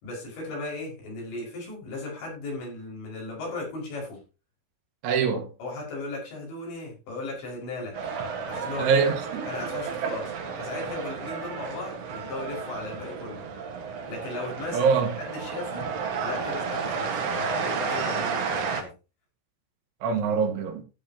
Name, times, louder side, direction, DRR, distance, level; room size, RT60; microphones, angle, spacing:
voice 1, 0.0-4.2 5.6-8.0 8.5-9.0 9.5-10.3 10.6-13.4 14.1-15.9 16.2-18.9, left 2 dB, 70° left, 7.8 m, -36 dB
voice 2, 5.0-5.5 8.8-9.4 10.0-10.1 14.7-15.1 20.0-20.8, right 6 dB, 85° right, 3.9 m, -24 dB
sound 1, 7.9-18.8, right 6 dB, 60° right, 1.7 m, -32 dB
15.5 x 9.1 x 3.0 m
omnidirectional pair, 5.3 m